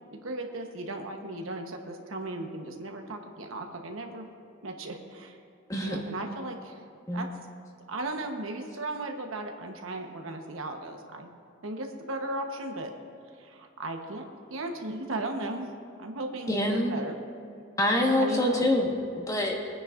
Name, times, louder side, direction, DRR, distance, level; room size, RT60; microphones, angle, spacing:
voice 1, 0.1-4.3 4.6-5.4 5.8-6.8 7.1-7.3 7.9-11.3 11.6-13.0 13.3-15.7 16.0-17.2 18.2-18.7, right 2 dB, 80° right, 3 dB, 1.1 m, -36 dB
voice 2, 16.5-16.9 17.8-19.6, left 1 dB, 15° left, 0 dB, 1.4 m, -26 dB
22.5 x 9.7 x 2.5 m, 2.4 s
head